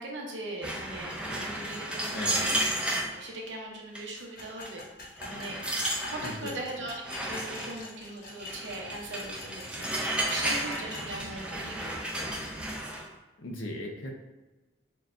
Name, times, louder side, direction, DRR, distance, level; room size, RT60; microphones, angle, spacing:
voice 1, 0.0-2.7 3.1-4.8 5.2-5.7 6.0-12.3, right 2 dB, 75° right, -1 dB, 0.8 m, -40 dB
sound 1, 0.6-3.1 4.0-4.2 4.7-4.8 5.2-6.4 7.0-7.8 8.4-13.1, right 1 dB, 5° right, 0.3 m, -33 dB
voice 2, 2.1-2.5 6.2-6.6 13.4-14.2, left 1 dB, 90° left, 1 dB, 0.7 m, -37 dB
sound 2, 4.4-11.1, left 2 dB, 50° left, 0.8 m, -44 dB
6.1 x 2.2 x 2.6 m, 1.1 s
head